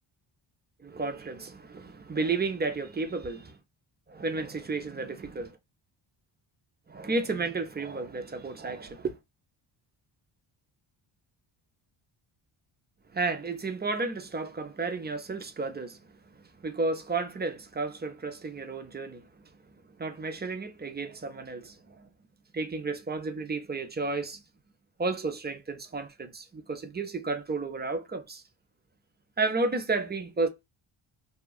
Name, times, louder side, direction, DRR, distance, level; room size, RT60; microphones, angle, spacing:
voice 1, 0.8-3.6 4.1-5.6 6.9-9.2 13.1-16.0 16.6-19.4 20.0-22.1 22.5-24.4 25.0-28.4 29.4-30.5, right 3 dB, 20° right, 0.6 m, -32 dB
2.8 x 2.3 x 2.3 m
cardioid pair, 75°, 49 cm